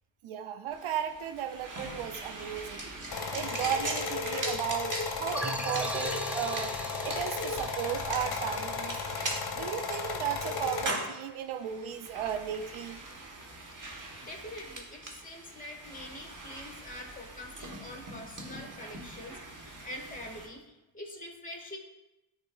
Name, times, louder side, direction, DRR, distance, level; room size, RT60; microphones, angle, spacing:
voice 1, 0.2-2.9 3.3-6.8 7.0-9.0 9.5-13.0, right 9 dB, 75° right, 10 dB, 0.6 m, -35 dB
sound 1, 0.7-20.5, right 2 dB, 40° right, 1.4 m, -42 dB
sound 2, 3.1-10.9, left 4 dB, 50° left, 0.9 m, -35 dB
sound 3, 5.3-9.8, right 1 dB, 5° right, 0.3 m, -39 dB
voice 2, 13.1-13.4 13.7-13.8 14.2-21.8, left 1 dB, 15° left, 1 dB, 1.7 m, -45 dB
10.5 x 4.2 x 2.3 m, 0.97 s
cardioid pair, 60°, 50 cm